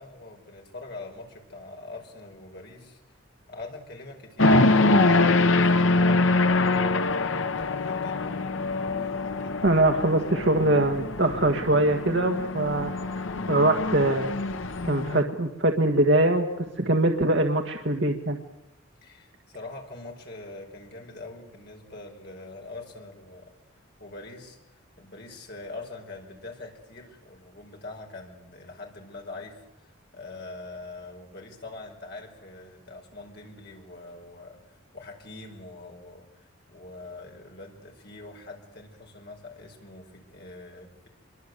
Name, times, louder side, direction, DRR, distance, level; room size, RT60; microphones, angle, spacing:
voice 1, 0.0-3.0 3.5-8.3 19.0-23.5 24.0-41.1, left 2 dB, 50° left, 2 dB, 5.2 m, -43 dB
sound 1, 4.4-15.2, left 2 dB, 70° left, 1.0 m, -24 dB
voice 2, 9.6-14.3 14.8-18.4, right 1 dB, 55° right, 3 dB, 1.6 m, -23 dB
25.5 x 23.5 x 8.1 m, 0.94 s
head